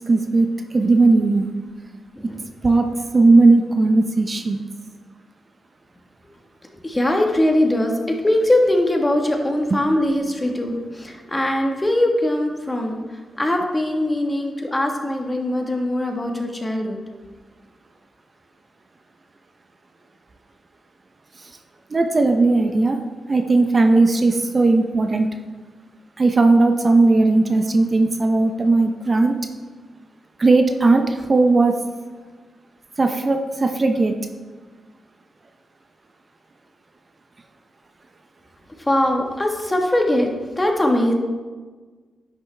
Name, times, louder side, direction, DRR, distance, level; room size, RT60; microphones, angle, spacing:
voice 1, 0.1-1.5 2.6-2.9 3.1-4.6 21.4-21.5 21.9-23.0 23.3-25.3 26.2-29.4 30.4-31.8 33.0-34.1, right 3 dB, 40° right, 5 dB, 0.7 m, -17 dB
voice 2, 6.8-17.0 38.8-40.3 40.6-41.1, left 1 dB, 20° left, 2 dB, 1.4 m, -21 dB
10.5 x 5.8 x 3.4 m, 1.4 s
cardioid pair, 70°, 0 cm